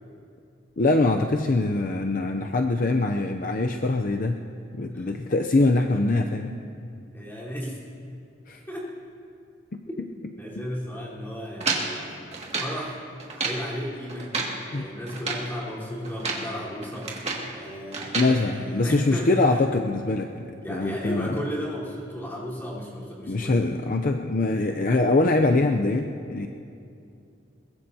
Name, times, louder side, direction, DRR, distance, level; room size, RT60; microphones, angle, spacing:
voice 1, 0.8-4.5 4.7-6.6 8.5-8.6 9.7-9.9 14.7-14.9 18.1-21.4 23.3-26.5, left 2 dB, 45° left, 4 dB, 0.5 m, -23 dB
voice 2, 7.1-7.8 8.7-8.9 9.9-12.1 12.6-13.0 13.3-14.3 14.7-17.1 17.5-19.4 20.6-23.6, equal, 10° left, -8 dB, 3.9 m, -34 dB
sound 1, 11.6-12.8 13.2-13.7 14.1-14.6 15.1-15.5 16.0-16.5 16.8-17.5 17.9-18.3, right 3 dB, 35° right, 2.1 m, -30 dB
22.5 x 21.0 x 2.8 m, 2.5 s
head